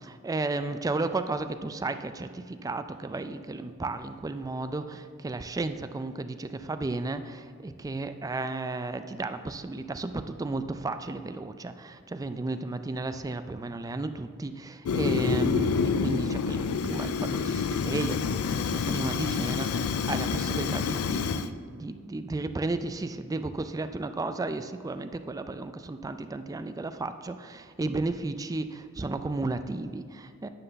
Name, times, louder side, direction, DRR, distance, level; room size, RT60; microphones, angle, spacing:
voice 1, 0.0-30.5, right 2 dB, 15° right, 10 dB, 0.3 m, -33 dB
Fire, 14.8-21.5, left 5 dB, 85° left, 0.4 m, -28 dB
9.8 x 6.6 x 4.0 m, 2.1 s
head